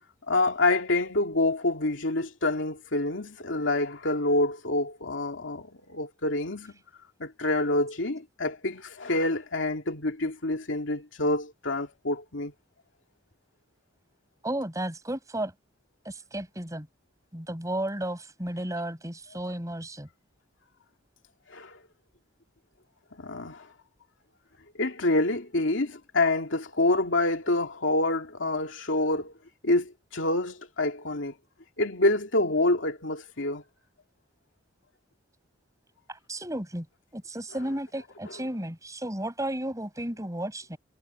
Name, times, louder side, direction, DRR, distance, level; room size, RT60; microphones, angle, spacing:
voice 1, 0.3-6.7 7.2-12.5 21.5-21.8 23.2-23.7 24.8-29.3 29.6-31.3 31.8-33.6, left 2 dB, 75° left, 2.6 m, -27 dB
voice 2, 14.4-15.5 16.0-16.9 17.3-20.1 36.1-36.9 37.1-40.8, right 1 dB, 15° right, 5.7 m, -33 dB
head